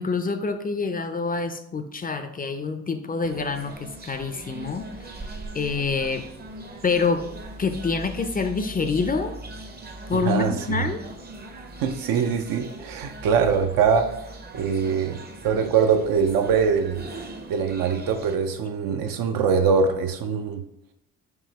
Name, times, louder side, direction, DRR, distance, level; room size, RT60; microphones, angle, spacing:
voice 1, 0.0-5.2 5.5-6.2 6.8-7.3 7.6-9.3 10.1-11.0, left 4 dB, 25° left, 8 dB, 0.4 m, -26 dB
sound 1, 3.2-18.4, right 2 dB, 25° right, 0.6 m, -40 dB
voice 2, 10.1-10.8 11.8-14.1 14.5-17.1 17.5-20.6, right 6 dB, 65° right, 6 dB, 0.6 m, -23 dB
4.7 x 2.8 x 2.9 m, 0.78 s
hypercardioid pair, 50°, 37 cm